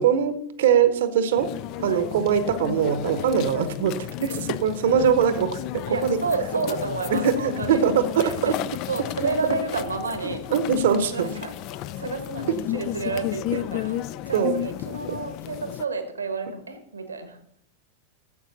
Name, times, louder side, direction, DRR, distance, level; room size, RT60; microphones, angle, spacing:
voice 1, 0.0-1.5 1.8-5.6 6.0-6.2 7.1-8.5 10.2-11.3 14.3-14.5 15.1-15.2, right 7 dB, 60° right, 12 dB, 1.0 m, -22 dB
sound 1, 1.4-15.9, left 14 dB, 40° left, 0.3 m, -33 dB
voice 2, 5.8-7.8 8.2-8.6 8.8-10.5 11.1-17.4, right 4 dB, 75° right, 9 dB, 1.2 m, -31 dB
13.5 x 7.9 x 4.0 m, 0.70 s
figure-of-eight pair, 90°, 0 cm